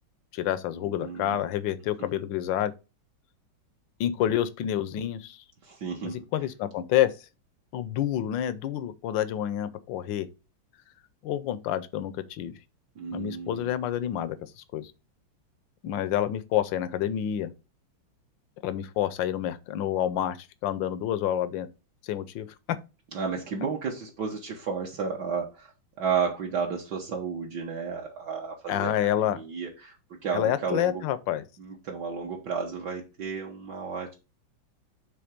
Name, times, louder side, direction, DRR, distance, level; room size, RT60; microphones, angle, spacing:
voice 1, 0.3-2.7 4.0-5.4 6.1-7.3 7.7-10.3 11.2-12.5 13.1-14.9 15.8-17.5 18.6-21.7 22.0-22.5 28.7-29.4 30.3-31.4, left 11 dB, 75° left, 1.2 m, -28 dB
voice 2, 0.8-1.5 2.0-2.2 5.6-6.2 13.0-13.8 23.1-25.7 26.0-28.9 29.3-31.0 31.6-34.1, right 6 dB, 60° right, 1.5 m, -32 dB
7.8 x 3.3 x 5.1 m
omnidirectional pair, 2.2 m